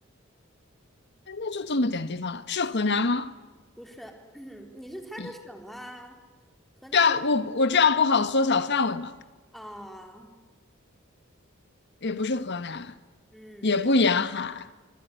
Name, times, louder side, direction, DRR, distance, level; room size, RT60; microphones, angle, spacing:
voice 1, 1.3-3.3 5.2-5.3 6.9-9.1 12.0-12.9 13.6-14.7, left 4 dB, 55° left, 1.3 m, -24 dB
voice 2, 3.8-6.2 6.8-7.1 9.5-10.3 13.3-13.8, equal, ahead, 3.9 m, -43 dB
25.5 x 23.5 x 9.6 m
head